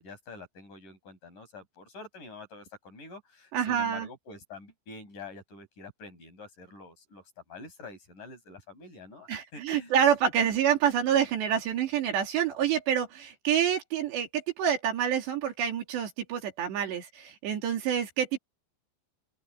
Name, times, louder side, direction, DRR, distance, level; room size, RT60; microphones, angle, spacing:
voice 1, 0.0-9.9, left 3 dB, 45° left, 7.3 m, -46 dB
voice 2, 3.5-4.1 9.3-18.4, right 9 dB, 70° right, 4.8 m, -27 dB
open air
omnidirectional pair, 5.2 m